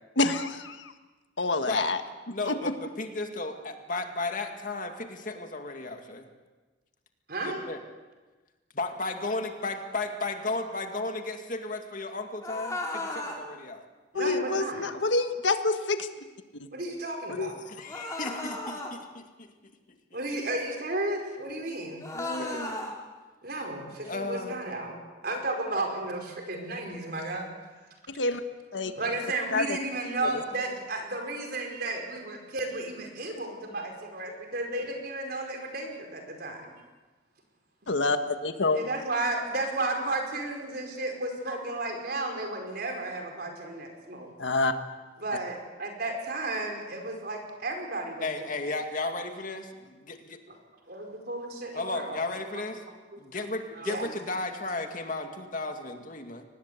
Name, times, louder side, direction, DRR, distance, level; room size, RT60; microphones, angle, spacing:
voice 1, 0.2-0.9 1.4-2.0 2.3-2.7 14.1-16.1 16.5-16.7 17.3-17.5 28.1-28.4 28.7-28.9 29.5-29.8 37.9-38.8 44.4-44.7, left 3 dB, 80° left, 8 dB, 1.5 m, -27 dB
voice 2, 2.3-6.3 7.4-7.8 8.7-13.8 17.7-19.5 22.1-22.9 24.1-25.1 48.2-50.4 51.7-52.8 53.2-56.4, left 2 dB, 45° left, 5 dB, 2.2 m, -34 dB
voice 3, 7.3-7.6 14.1-14.9 16.7-17.6 20.1-22.0 22.4-22.6 23.4-25.0 25.2-27.5 28.9-36.7 38.7-44.3 45.2-48.5 50.5-50.6 50.9-52.2 52.5-52.6 53.1-53.2 53.7-54.1, right 2 dB, 55° right, 3 dB, 5.1 m, -33 dB
sound 1, 12.4-13.4 17.9-18.9 22.0-22.9, left 2 dB, 15° left, 3.5 m, -35 dB
24.0 x 19.5 x 8.3 m, 1.3 s
head